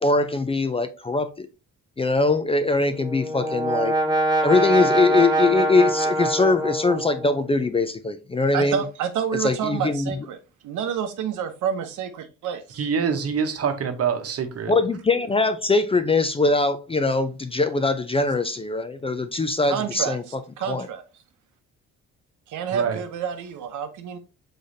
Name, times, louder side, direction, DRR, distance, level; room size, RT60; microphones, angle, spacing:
voice 1, 0.0-1.5 2.0-3.9 4.4-8.8 9.4-10.2 14.7-20.2 20.6-20.9, left 3 dB, 20° left, 0.4 m, -22 dB
Brass instrument, 2.8-7.6, right 1 dB, 15° right, 0.8 m, -24 dB
voice 2, 8.5-10.4 10.6-12.9 19.7-21.0 22.5-24.2, right 8 dB, 80° right, 0.8 m, -29 dB
voice 3, 12.8-14.7 22.7-23.0, right 6 dB, 50° right, 1.0 m, -25 dB
5.0 x 4.0 x 2.6 m
cardioid pair, 90°, 30 cm